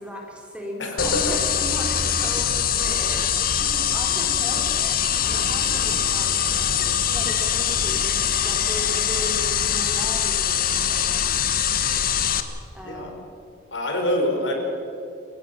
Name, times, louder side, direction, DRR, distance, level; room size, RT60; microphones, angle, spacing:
voice 1, 0.0-11.4 12.7-13.2, equal, 5° right, 0 dB, 3.6 m, -37 dB
voice 2, 0.8-1.3 12.8-13.1 13.7-14.5, left 1 dB, 70° left, 2 dB, 4.7 m, -25 dB
sound 1, 1.0-12.4, left 8 dB, 45° left, 1.4 m, -23 dB
Bowed string instrument, 5.0-9.3, right 2 dB, 70° right, 1.9 m, -42 dB
28.0 x 16.5 x 6.9 m, 2.8 s
head